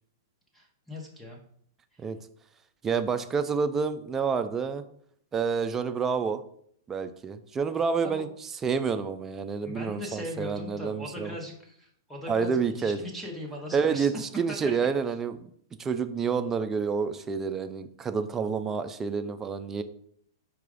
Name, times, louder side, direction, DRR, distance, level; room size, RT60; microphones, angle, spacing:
voice 1, 0.5-1.4 1.9-2.0 8.0-8.2 9.6-14.1 14.5-14.6, left 1 dB, ahead, -1 dB, 0.9 m, -39 dB
voice 2, 2.8-4.8 5.3-6.4 6.9-8.3 8.6-11.4 12.3-13.0 13.7-15.5 15.8-19.8, right 5 dB, 15° right, 9 dB, 0.3 m, -28 dB
4.7 x 2.3 x 4.8 m, 0.65 s
hypercardioid pair, 145°, 2 cm